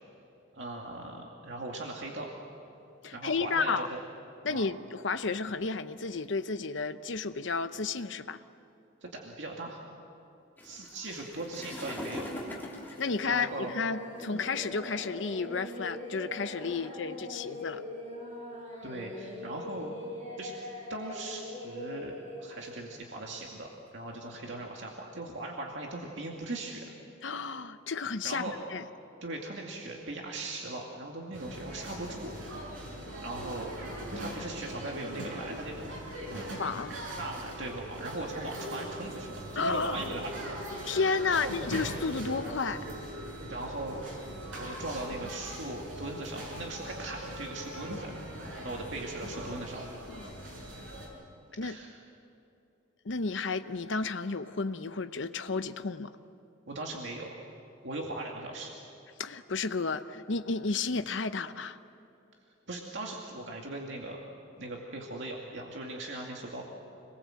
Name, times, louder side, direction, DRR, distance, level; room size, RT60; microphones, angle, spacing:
voice 1, 0.5-2.3 3.1-4.0 4.5-4.7 9.0-9.9 10.6-12.4 13.3-13.7 17.3-17.4 18.8-19.9 20.4-20.5 20.9-23.7 23.9-26.9 28.2-28.6 29.2-32.4 33.2-33.7 34.1-35.9 36.3-36.5 37.2-40.6 41.3-41.5 43.5-44.1 44.6-49.8 51.6-52.0 56.7-57.3 57.8-58.7 62.7-64.2 64.6-66.7, right 2 dB, 65° right, -1 dB, 2.4 m, -39 dB
voice 2, 3.0-3.9 4.4-8.4 13.0-17.8 27.2-28.4 28.7-28.8 36.6-37.0 39.6-40.1 40.8-42.9 50.1-50.3 51.6-51.8 53.0-56.1 59.2-61.8, left 4 dB, 70° left, 10 dB, 0.8 m, -32 dB
sound 1, 10.6-14.1 14.8-15.0 15.7-15.8 16.1-16.3 16.9-17.4 18.3-19.4 19.8-20.4 20.8-21.1 21.5-24.2, left 1 dB, 10° left, 3.4 m, -43 dB
Singing, 13.0-22.4, left 1 dB, 35° right, 6.8 m, -42 dB
sound 2, 31.3-51.1, equal, 80° right, 7.0 m, -41 dB
26.5 x 21.0 x 7.8 m, 2.7 s
head